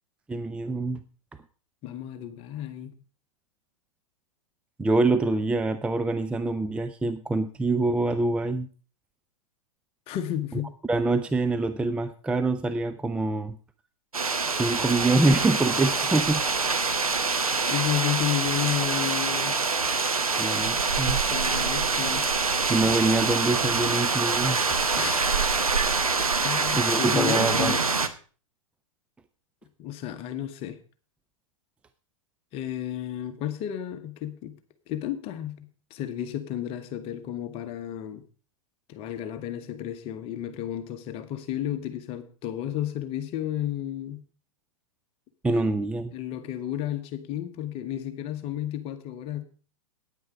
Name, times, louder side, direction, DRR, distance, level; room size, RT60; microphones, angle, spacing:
voice 1, 0.3-1.0 4.8-8.7 10.9-13.6 14.6-16.4 20.4-21.2 22.7-24.6 26.7-27.8 45.4-46.1, right 2 dB, 5° right, 0.4 m, -25 dB
voice 2, 1.8-2.9 10.1-10.7 17.7-19.6 21.3-22.3 24.9-25.4 26.4-27.8 29.8-30.8 32.5-34.6 34.9-38.2 38.9-44.2 45.5-45.7 46.1-49.4, left 11 dB, 35° left, 1.2 m, -32 dB
sound 1, 14.1-28.1, right 4 dB, 90° right, 1.0 m, -25 dB
9.5 x 9.4 x 5.0 m
figure-of-eight pair, 110°, 18 cm